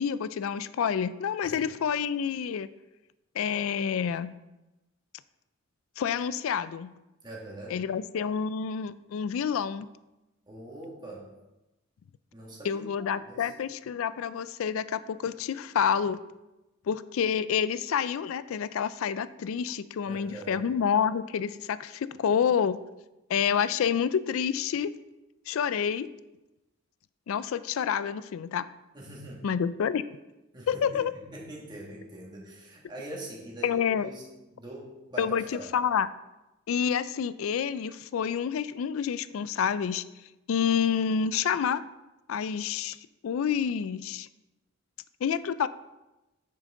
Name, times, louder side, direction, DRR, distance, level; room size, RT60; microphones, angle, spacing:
voice 1, 0.0-2.7 3.4-4.3 6.0-6.9 7.7-9.9 12.6-16.2 16.9-22.8 23.3-24.9 25.5-26.1 27.3-28.7 29.4-30.0 30.7-31.1 33.6-34.1 35.2-36.1 36.7-40.0 40.5-41.8 42.3-43.0 43.2-44.3 45.2-45.7, left 7 dB, 75° left, 15 dB, 0.3 m, -28 dB
voice 2, 7.2-7.8 10.5-11.3 12.3-13.5 20.1-20.7 28.9-29.5 30.5-34.2 34.5-35.7, right 1 dB, 20° right, -4 dB, 2.1 m, -43 dB
8.5 x 6.6 x 3.8 m, 1.0 s
head